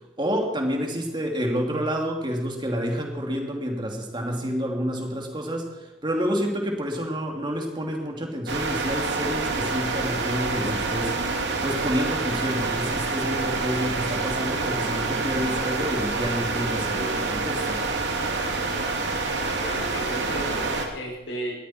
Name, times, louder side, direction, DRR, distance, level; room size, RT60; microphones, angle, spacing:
voice 1, 0.2-11.2 11.6-17.8, equal, 25° right, 2 dB, 2.9 m, -29 dB
sound 1, 8.5-20.9, right 3 dB, 85° right, 2.5 m, -27 dB
voice 2, 19.6-21.5, equal, 75° left, -3 dB, 6.3 m, -34 dB
21.0 x 14.0 x 4.6 m, 1.0 s
head